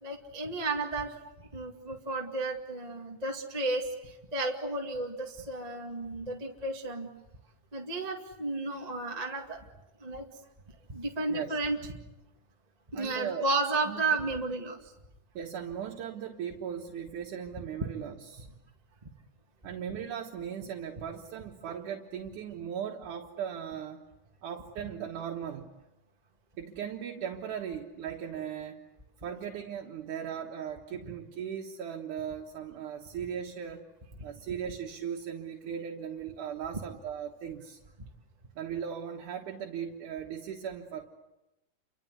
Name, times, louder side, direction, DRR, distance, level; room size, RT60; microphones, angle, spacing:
voice 1, 0.0-1.1 1.5-7.1 7.7-9.6 10.0-10.3 10.9-11.8 12.9-14.8, right 2 dB, 15° right, 1 dB, 1.6 m, -33 dB
voice 2, 12.9-13.5 13.9-14.0 15.3-18.5 19.6-24.0 24.4-25.8 26.6-28.8 29.2-33.8 34.2-37.8 38.6-41.0, right 8 dB, 75° right, 0 dB, 2.9 m, -38 dB
29.5 x 25.0 x 8.1 m, 0.97 s
omnidirectional pair, 3.6 m